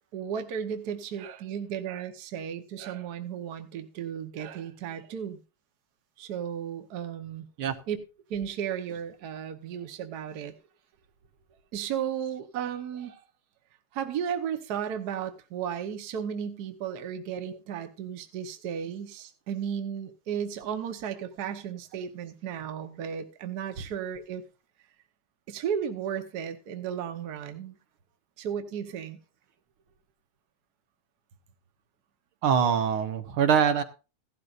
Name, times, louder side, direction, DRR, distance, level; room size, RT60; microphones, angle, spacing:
voice 1, 0.1-5.4 6.2-7.5 7.9-8.0 8.3-10.5 11.7-13.2 13.9-24.4 25.5-27.8 28.4-29.2, right 8 dB, 55° right, 1.4 m, -34 dB
voice 2, 32.4-33.8, right 7 dB, 75° right, 1.7 m, -23 dB
16.0 x 12.5 x 2.5 m
omnidirectional pair, 2.4 m